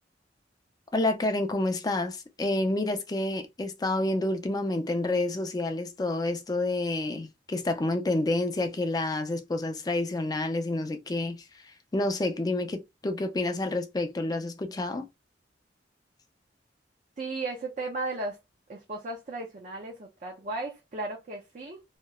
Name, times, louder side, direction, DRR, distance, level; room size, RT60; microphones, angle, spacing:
voice 1, 0.9-15.1, left 2 dB, 20° left, 0.4 m, -29 dB
voice 2, 17.2-18.4 18.7-21.8, right 2 dB, 45° right, 0.5 m, -35 dB
2.9 x 2.0 x 2.2 m
head